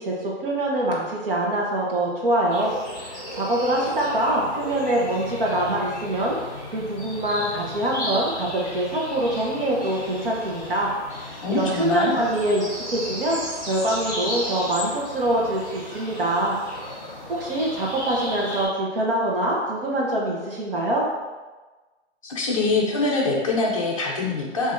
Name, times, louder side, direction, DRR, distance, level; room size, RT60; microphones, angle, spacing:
voice 1, 0.0-2.7 3.3-6.4 6.7-10.9 11.5-16.6 17.4-21.1, right 1 dB, 50° right, -3 dB, 1.0 m, -24 dB
sound 1, 2.5-18.7, left 1 dB, 5° right, 1.1 m, -35 dB
voice 2, 11.4-12.2 22.2-24.7, left 3 dB, 30° left, -2 dB, 0.6 m, -24 dB
6.6 x 2.7 x 2.6 m, 1.2 s
hypercardioid pair, 175°, 35 cm